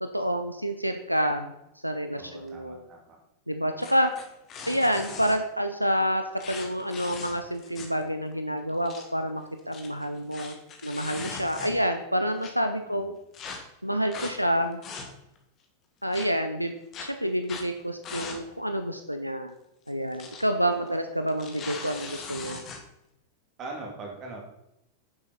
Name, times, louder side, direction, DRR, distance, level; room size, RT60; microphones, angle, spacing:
voice 1, 0.0-1.5 1.8-2.8 3.5-4.1 4.7-10.6 10.8-13.1 13.8-14.8 16.0-19.5 19.9-22.6, equal, 90° right, 7 dB, 0.6 m, -28 dB
voice 2, 2.2-3.2 12.8-13.2 20.6-20.8 23.6-24.4, right 3 dB, 30° right, 0 dB, 2.8 m, -42 dB
sound 1, 3.8-5.4 6.4-8.0 8.3-8.4 8.7-9.0 9.6-12.0 12.4-12.5 13.3-13.6 14.1-14.3 14.7-15.4 16.1-16.3 16.9-17.1 17.4-17.7 18.0-18.4 18.7-18.8 19.9-20.4 20.7-20.9 21.3-22.8, left 5 dB, 30° left, 1.8 m, -40 dB
9.8 x 7.3 x 4.1 m, 0.85 s
figure-of-eight pair, 90°, 0 cm